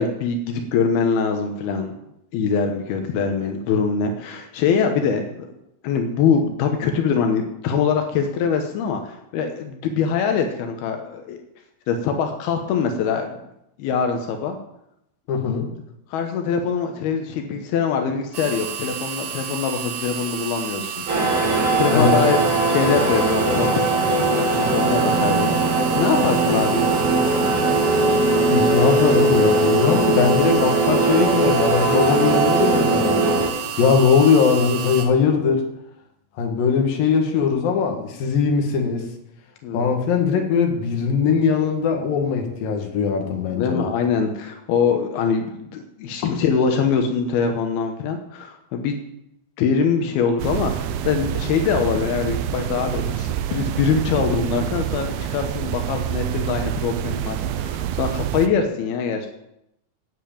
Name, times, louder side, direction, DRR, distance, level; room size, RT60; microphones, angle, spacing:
voice 1, 0.0-1.9 2.3-5.5 5.8-11.4 11.9-13.4 13.8-14.6 16.1-21.0 21.4-22.4 22.7-23.8 24.1-26.9 39.6-39.9 43.5-49.0 49.6-59.3, left 6 dB, 85° left, 4 dB, 3.1 m, -23 dB
voice 2, 15.3-15.7 21.9-22.2 28.5-33.4 33.8-35.6 36.4-39.1 39.7-43.9 46.2-46.3, left 6 dB, 70° left, 3 dB, 3.4 m, -20 dB
sound 1, 18.3-35.0, right 8 dB, 65° right, 3.1 m, -31 dB
sound 2, 21.1-33.5, right 2 dB, 40° right, 4.5 m, -20 dB
sound 3, 50.4-58.5, right 10 dB, 85° right, 2.6 m, -27 dB
11.0 x 7.9 x 8.8 m, 0.83 s
omnidirectional pair, 4.3 m